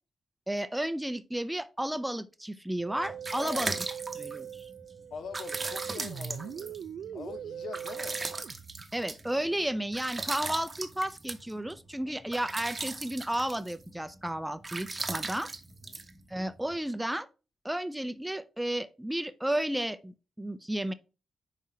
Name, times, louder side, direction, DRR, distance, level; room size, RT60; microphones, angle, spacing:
voice 1, 0.5-3.7 4.2-4.7 8.9-15.5 16.3-17.3 17.6-20.9, right 1 dB, 5° right, 0.4 m, -33 dB
sound 1, 2.8-16.8, right 3 dB, 25° right, 0.8 m, -39 dB
Musical instrument, 2.8-8.8, right 9 dB, 80° right, 0.3 m, -41 dB
voice 2, 3.4-3.8 5.1-6.8 7.1-8.2 12.2-12.3 15.8-16.1, left 6 dB, 65° left, 0.7 m, -43 dB
5.5 x 4.9 x 4.2 m
cardioid pair, 115°, 0 cm